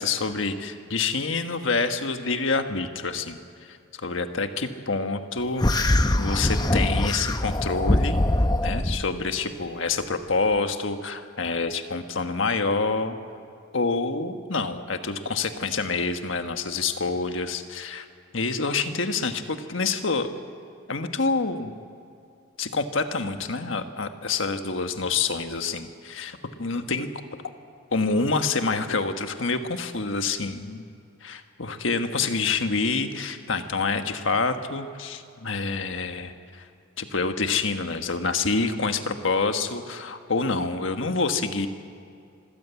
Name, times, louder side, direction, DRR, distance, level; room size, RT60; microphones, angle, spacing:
voice 1, 0.0-3.4 4.0-8.2 8.6-13.2 13.7-18.0 18.3-20.3 20.9-21.7 22.6-27.1 27.9-30.8 31.2-36.6 37.0-41.7, left 4 dB, 70° left, 7 dB, 1.4 m, -27 dB
sound 1, 5.6-9.0, left 1 dB, 20° left, 0.8 m, -22 dB
26.0 x 15.5 x 8.3 m, 2.4 s
head